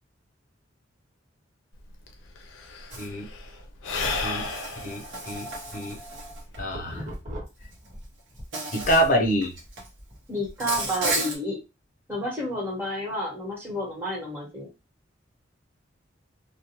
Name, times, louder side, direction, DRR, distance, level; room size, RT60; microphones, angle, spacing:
Sigh / Breathing, 1.8-1.9 2.1-6.8, left 3 dB, 90° left, 0.5 m, -33 dB
voice 1, 2.9-3.3 4.2-4.5 4.8-6.0 6.6-7.0 8.7-9.5, equal, 45° left, 1 dB, 0.7 m, -26 dB
Insect, 2.9-3.1 4.0-6.6 7.7-7.9 8.5-9.1 9.4-9.9 10.6-11.4, right 2 dB, 75° right, 0.8 m, -33 dB
sound 1, 6.1-8.5 8.8-11.2, equal, 40° right, 1.0 m, -40 dB
voice 2, 10.3-11.6 12.1-14.7, equal, 10° right, -4 dB, 1.2 m, -30 dB
2.4 x 2.2 x 2.9 m, 0.28 s
head